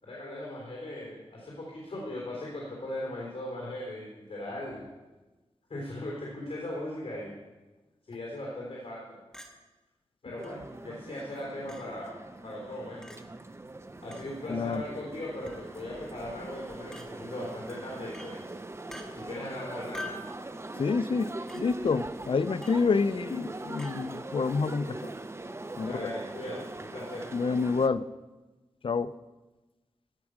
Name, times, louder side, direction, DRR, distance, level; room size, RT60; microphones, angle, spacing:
voice 1, 0.0-4.9 5.7-7.3 8.1-9.0 10.2-12.1 12.4-13.2 14.0-18.6 19.1-20.1 25.8-27.3, left 1 dB, 75° left, -4 dB, 3.6 m, -38 dB
Chink clink, 9.3-9.5 10.4-10.5 11.7-11.8 13.0-13.2 14.1-14.3 15.5-15.7 16.9-17.1 18.1-18.3 18.9-19.1 19.9-20.3 21.5-21.6 22.6-22.8 23.8-24.0, left 1 dB, 5° left, 1.4 m, -43 dB
sound 1, 10.4-27.9, right 2 dB, 25° right, 0.6 m, -42 dB
voice 2, 14.5-14.8 20.8-25.1 25.8-26.1 27.3-28.0 28.8-29.1, left 4 dB, 55° left, 14 dB, 0.4 m, -28 dB
17.0 x 6.0 x 6.3 m, 1.2 s
wide cardioid pair, 100°, 11 cm